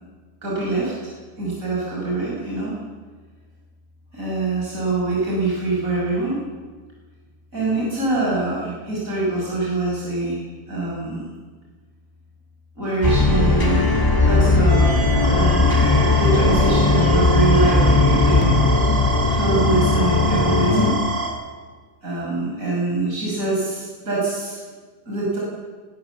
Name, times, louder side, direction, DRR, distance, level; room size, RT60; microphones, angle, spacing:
voice 1, 0.4-2.7 4.1-6.4 7.5-10.4 10.7-11.2 12.7-13.9 14.2-14.9 15.3-15.8 16.2-18.6 19.3-21.2 22.0-24.6 25.0-25.4, right 3 dB, 65° right, -5 dB, 6.8 m, -24 dB
sound 1, 13.0-20.9, left 3 dB, 15° left, 2.2 m, -17 dB
sound 2, 14.7-21.3, right 4 dB, 80° right, 5.9 m, -27 dB
21.5 x 19.0 x 7.3 m, 1.4 s
omnidirectional pair, 1.6 m